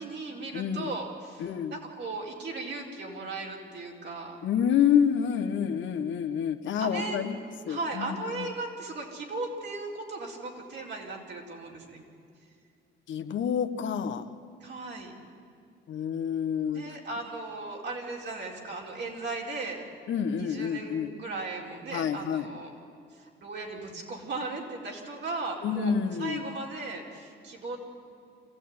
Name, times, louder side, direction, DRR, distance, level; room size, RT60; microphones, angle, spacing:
voice 1, 0.0-4.4 6.8-7.3 7.7-12.0 14.6-15.1 16.7-19.8 20.3-22.7 23.1-27.8, right 3 dB, 60° right, -1 dB, 4.7 m, -37 dB
voice 2, 0.5-0.9 1.4-1.8 4.4-7.4 7.6-8.4 13.1-14.2 15.9-16.8 20.1-21.1 21.9-22.5 25.6-26.5, left 8 dB, 70° left, 8 dB, 1.3 m, -28 dB
26.0 x 15.5 x 9.7 m, 2.4 s
cardioid pair, 90°, 20 cm